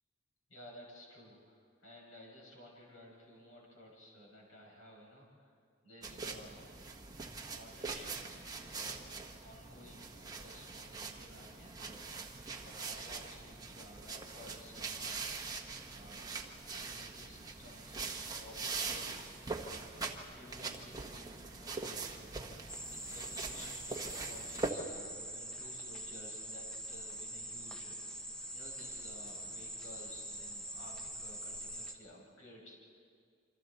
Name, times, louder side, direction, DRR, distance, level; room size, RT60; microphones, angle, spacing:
voice 1, 0.5-5.5 5.8-6.7 7.5-9.1 9.4-15.4 15.9-16.2 16.6-32.7, left 1 dB, 80° left, -2 dB, 6.4 m, -55 dB
sound 1, 6.0-24.7, right 4 dB, 20° right, 1.3 m, -43 dB
sound 2, 22.7-31.9, right 1 dB, 5° left, 1.2 m, -44 dB
28.0 x 25.5 x 4.2 m, 2.2 s
head